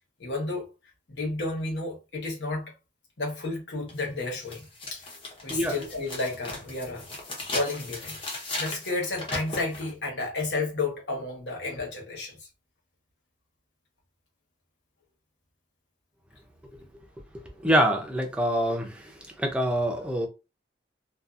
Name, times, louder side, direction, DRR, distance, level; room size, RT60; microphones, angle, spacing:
voice 1, 0.2-0.7 1.1-2.7 3.2-5.2 5.4-7.1 7.5-8.2 8.6-12.5, left 2 dB, 70° left, 1.1 m, -32 dB
sound 1, 3.9-4.0 4.5-9.9, left 2 dB, 30° left, 0.8 m, -37 dB
voice 2, 17.6-19.0 19.4-20.3, equal, 5° right, 0.5 m, -25 dB
2.6 x 2.4 x 2.4 m
head